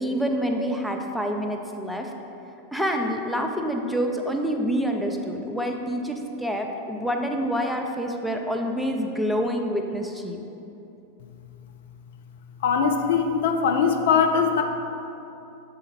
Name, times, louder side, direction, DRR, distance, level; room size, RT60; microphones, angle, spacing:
voice 1, 0.0-2.1 2.7-10.4, equal, ahead, 2 dB, 0.5 m, -27 dB
voice 2, 12.6-14.6, left 6 dB, 55° left, 5 dB, 0.4 m, -21 dB
7.1 x 3.8 x 4.3 m, 2.8 s
figure-of-eight pair, 90°, 0 cm